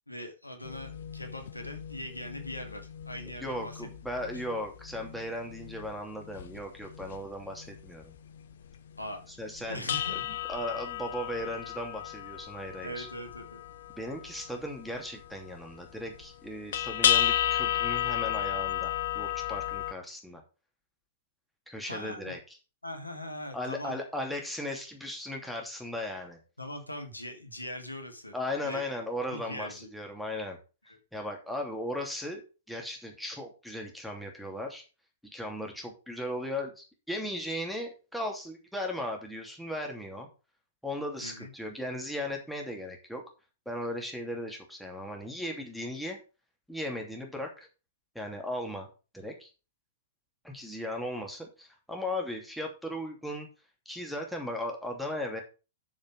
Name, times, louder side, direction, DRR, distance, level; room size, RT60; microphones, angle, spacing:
voice 1, 0.1-3.8 4.3-4.4 9.0-9.2 9.7-10.3 12.8-13.6 21.8-22.4 22.8-24.3 26.6-28.3 28.6-28.8 29.3-29.9 30.9-31.0 41.2-41.5, left 1 dB, 90° left, 6 dB, 2.1 m, -41 dB
sound 1, 0.6-7.9 8.2-8.7 9.0-9.1 9.5-19.9, left 11 dB, 60° left, 0.8 m, -33 dB
voice 2, 3.4-8.2 9.4-9.9 10.3-13.1 14.0-20.4 21.7-22.4 23.5-26.4 28.3-30.6 31.1-34.8 35.2-40.3 40.8-43.2 43.6-46.2 46.7-47.7 48.1-48.9 49.1-49.5 50.4-53.5 53.8-55.4, left 1 dB, ahead, 1 dB, 2.9 m, -37 dB
7.3 x 7.1 x 6.2 m, 0.32 s
figure-of-eight pair, 105°, 0 cm